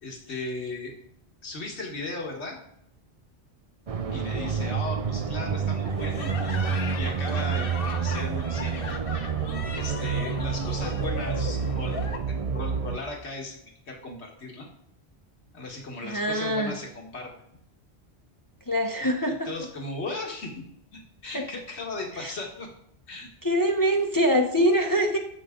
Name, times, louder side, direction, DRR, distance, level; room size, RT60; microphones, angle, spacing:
voice 1, 0.0-1.0 1.4-2.6 4.1-6.5 6.9-8.9 9.7-14.7 15.5-17.3 19.4-20.7 20.9-22.7 23.1-23.3, left 2 dB, 80° left, 0 dB, 2.1 m, -37 dB
sound 1, 3.9-13.0, right 6 dB, 40° right, 0.6 m, -28 dB
sound 2, 5.8-12.2, left 4 dB, 60° left, 1.2 m, -37 dB
voice 2, 16.0-16.8 18.7-19.5 21.3-21.4 22.2-22.3 23.4-25.2, equal, 20° left, 3 dB, 0.9 m, -24 dB
13.5 x 8.2 x 3.8 m, 0.72 s
omnidirectional pair, 1.1 m